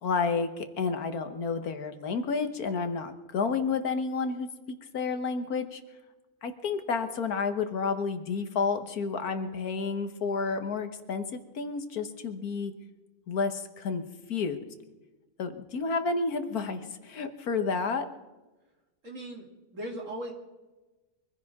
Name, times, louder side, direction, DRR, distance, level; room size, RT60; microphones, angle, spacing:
voice 1, 0.0-5.8 6.4-12.7 13.3-14.0 14.3-14.6 15.4-18.1, left 4 dB, 75° left, 8 dB, 1.7 m, -30 dB
voice 2, 19.0-19.5 19.7-20.3, right 1 dB, 55° right, 0 dB, 3.1 m, -37 dB
24.0 x 15.5 x 3.6 m, 1.1 s
omnidirectional pair, 1.6 m